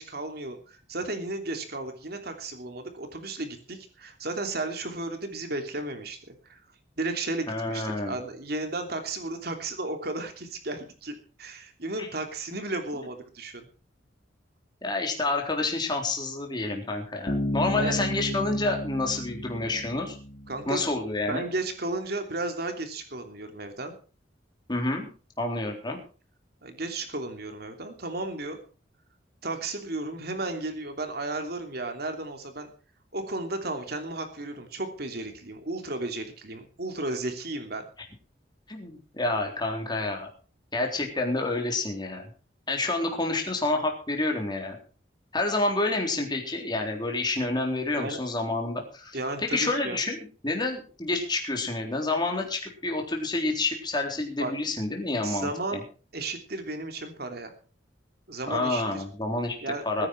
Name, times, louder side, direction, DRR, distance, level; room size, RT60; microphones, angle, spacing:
voice 1, 0.0-6.6 7.0-13.7 17.7-18.0 20.5-20.8 21.3-23.9 26.6-28.6 29.4-32.7 33.1-37.8 47.8-48.2 49.1-50.0 54.4-54.5 55.2-55.8 56.1-57.5 58.3-59.0 59.6-60.1, right 2 dB, 60° right, 6 dB, 3.0 m, -34 dB
voice 2, 7.5-8.2 12.0-12.1 14.8-20.2 20.7-21.4 24.7-25.1 25.4-26.0 38.7-40.3 40.7-42.3 42.7-44.8 45.3-55.8 58.5-59.6 59.8-60.1, left 2 dB, 25° left, 2 dB, 3.8 m, -29 dB
Bass guitar, 17.3-20.9, equal, 40° left, 2.8 m, -32 dB
21.5 x 9.8 x 4.7 m, 0.38 s
head